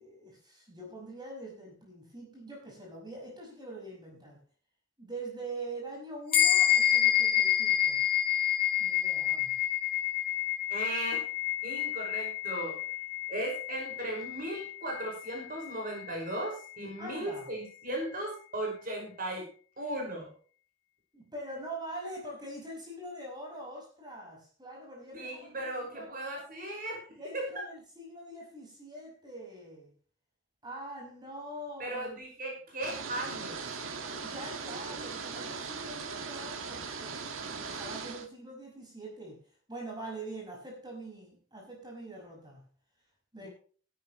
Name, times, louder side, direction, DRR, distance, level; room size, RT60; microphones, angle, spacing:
voice 1, 0.0-4.4 5.0-8.0 8.8-9.6 17.0-17.5 21.1-26.1 27.2-29.9 30.6-32.1 34.2-42.7 43.3-43.5, right 1 dB, 20° right, -1 dB, 5.6 m, -44 dB
sound 1, 6.3-16.1, left 12 dB, 45° left, 3.5 m, -28 dB
voice 2, 10.7-11.2 11.6-12.8 13.3-19.5 19.8-20.3 25.1-27.1 27.3-27.6 31.8-33.8 43.4-43.5, right 1 dB, 45° right, 0 dB, 5.7 m, -37 dB
sound 2, 32.8-38.3, right 5 dB, 90° right, 1.8 m, -39 dB
17.0 x 12.0 x 3.1 m, 0.42 s
head